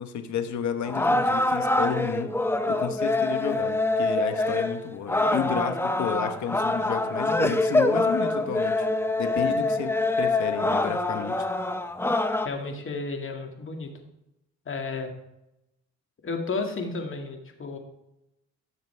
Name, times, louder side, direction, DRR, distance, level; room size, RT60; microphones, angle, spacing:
voice 1, 0.0-2.3 2.7-8.8 9.2-11.4, left 7 dB, 70° left, 8 dB, 1.1 m, -31 dB
sound 1, 0.9-12.5, left 2 dB, 10° left, 0.6 m, -25 dB
voice 2, 12.4-13.9 14.7-15.1 16.2-17.8, left 3 dB, 45° left, 3 dB, 2.0 m, -32 dB
15.5 x 6.7 x 3.3 m, 0.88 s
cardioid pair, 90°, 30 cm